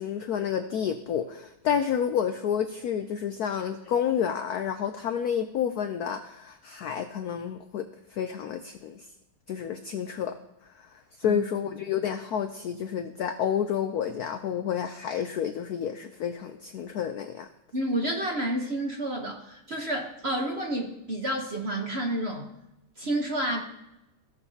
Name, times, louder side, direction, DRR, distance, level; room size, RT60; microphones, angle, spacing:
voice 1, 0.0-7.8 8.1-9.1 9.5-10.4 11.2-17.5, left 8 dB, 85° left, 7 dB, 0.8 m, -29 dB
voice 2, 17.7-22.5 23.0-23.6, right 1 dB, 45° right, 1 dB, 0.8 m, -30 dB
16.0 x 6.8 x 2.8 m, 0.91 s
omnidirectional pair, 2.3 m